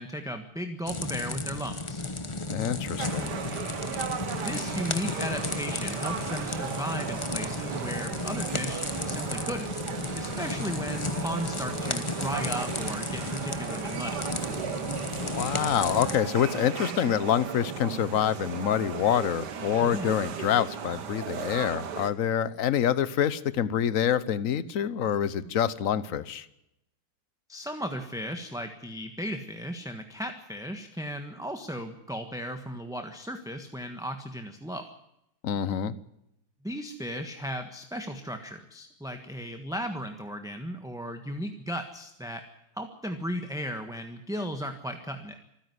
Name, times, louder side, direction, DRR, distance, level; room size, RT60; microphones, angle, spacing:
voice 1, 0.0-2.0 4.4-9.7 10.1-14.2 19.8-20.1 27.5-34.9 36.6-42.4 42.7-45.4, equal, ahead, 6 dB, 1.2 m, -35 dB
sound 1, 0.9-16.2, left 3 dB, 20° left, 0.9 m, -34 dB
voice 2, 2.5-3.3 15.2-26.5 35.4-35.9, left 9 dB, 55° left, 16 dB, 1.1 m, -26 dB
sound 2, 3.0-22.1, right 7 dB, 60° right, 1.8 m, -36 dB
26.5 x 10.5 x 9.7 m, 0.84 s
omnidirectional pair, 2.1 m